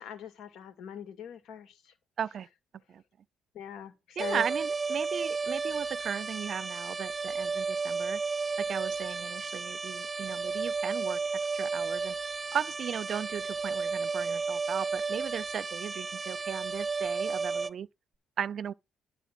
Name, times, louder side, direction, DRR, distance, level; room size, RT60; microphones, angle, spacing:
voice 1, 0.0-1.9 3.5-4.4, left 9 dB, 80° left, 2.0 m, -42 dB
voice 2, 2.2-2.5 2.9-3.0 4.2-8.2 8.6-11.2 11.5-12.2 12.5-17.9 18.4-18.7, right 8 dB, 60° right, 0.4 m, -36 dB
sound 1, 4.2-17.7, right 4 dB, 25° right, 0.9 m, -33 dB
11.0 x 3.8 x 7.6 m
cardioid pair, 90°, 0 cm